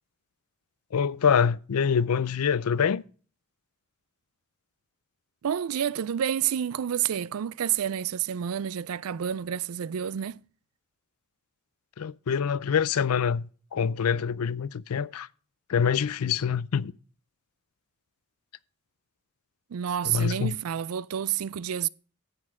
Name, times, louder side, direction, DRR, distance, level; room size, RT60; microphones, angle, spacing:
voice 1, 0.9-3.0 12.0-15.3 15.7-16.9 20.0-20.6, left 7 dB, 90° left, 0.5 m, -25 dB
voice 2, 5.4-10.4 19.7-21.9, right 9 dB, 75° right, 0.4 m, -29 dB
10.5 x 8.4 x 3.6 m
head